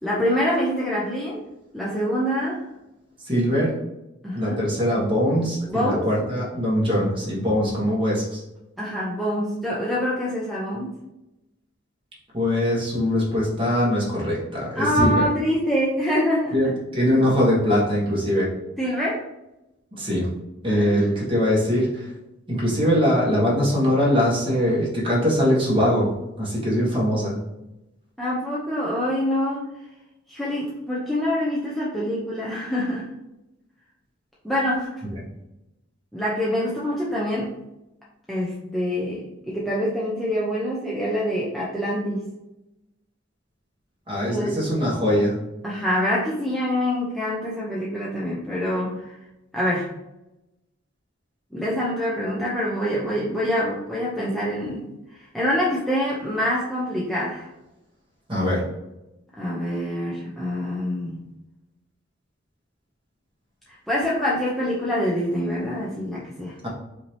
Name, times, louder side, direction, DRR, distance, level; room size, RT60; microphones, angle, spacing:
voice 1, 0.0-1.4 1.7-2.6 4.2-4.6 5.7-6.1 8.8-10.9 14.7-16.6 18.8-19.2 20.7-21.1 28.2-29.7 30.3-33.1 34.4-34.9 36.1-37.5 38.3-42.3 44.2-44.7 45.6-49.2 49.5-49.9 51.5-54.9 55.2-57.5 59.4-61.2 63.9-66.5, equal, ahead, -7 dB, 0.7 m, -25 dB
voice 2, 3.2-3.8 4.3-8.4 12.3-15.2 16.5-18.5 20.0-20.3 20.6-22.1 22.5-26.1 26.4-27.3 44.1-45.4 58.3-58.6 66.6-66.7, equal, 25° right, -5 dB, 1.6 m, -22 dB
5.2 x 2.9 x 3.3 m, 0.93 s
head